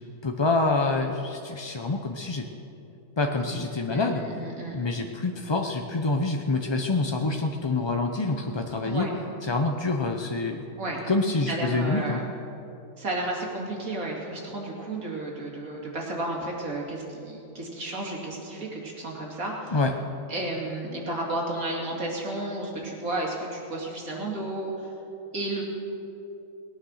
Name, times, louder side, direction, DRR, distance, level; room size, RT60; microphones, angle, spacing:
voice 1, 0.2-2.5 3.2-4.2 4.7-9.1 9.4-10.6 11.1-12.2 19.7-19.9, left 3 dB, 35° left, 3 dB, 0.4 m, -26 dB
voice 2, 3.4-4.8 8.8-9.1 10.8-11.0 11.5-12.3 13.0-19.8 20.3-24.9 25.3-25.6, right 2 dB, 90° right, -2 dB, 3.0 m, -32 dB
19.5 x 9.1 x 6.4 m, 2.7 s
omnidirectional pair, 1.4 m